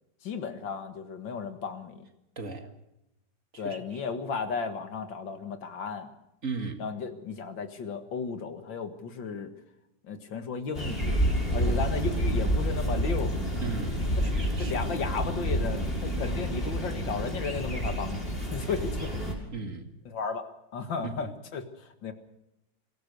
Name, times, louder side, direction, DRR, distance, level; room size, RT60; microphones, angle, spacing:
voice 1, 0.2-2.1 3.6-6.1 6.8-9.5 10.0-11.2 11.5-13.4 14.2-14.3 14.6-19.1 20.1-22.1, left 5 dB, 85° left, 7 dB, 2.4 m, -34 dB
voice 2, 2.4-2.7 3.5-4.0 6.4-6.8 11.6-11.8 13.6-14.8 18.6-19.1 19.5-19.9 21.0-21.3, right 4 dB, 45° right, 5 dB, 2.3 m, -37 dB
sound 1, 10.7-19.3, equal, 30° left, 5.9 m, -29 dB
24.5 x 16.5 x 6.8 m, 0.88 s
omnidirectional pair, 2.0 m